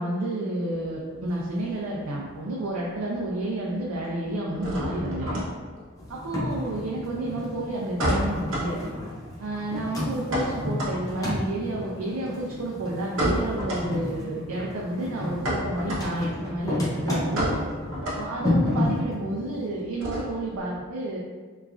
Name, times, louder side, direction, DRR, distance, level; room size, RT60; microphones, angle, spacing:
voice 1, 0.0-5.4 6.1-8.8 9.4-17.5 18.1-21.2, right 1 dB, 85° right, -3 dB, 0.4 m, -30 dB
sound 1, 0.7-2.4 2.6-3.3 3.6-20.6, equal, 65° right, 0.8 m, -32 dB
sound 2, 6.0-19.6, left 1 dB, 15° left, 0.5 m, -31 dB
3.0 x 2.4 x 2.4 m, 1.5 s
head